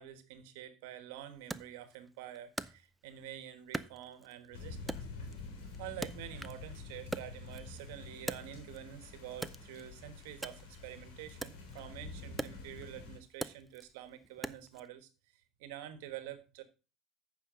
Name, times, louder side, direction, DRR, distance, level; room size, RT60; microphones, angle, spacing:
voice 1, 0.0-5.0 5.8-16.6, right 11 dB, 80° right, 12 dB, 1.3 m, -48 dB
Wood, 1.5-3.3 3.7-4.5 4.9-6.7 7.0-8.9 9.3-14.9, right 2 dB, 10° right, 0.5 m, -43 dB
sound 1, 4.5-13.2, left 4 dB, 85° left, 3.9 m, -48 dB
9.0 x 5.7 x 5.0 m, 0.31 s
supercardioid pair, 95°, 0 cm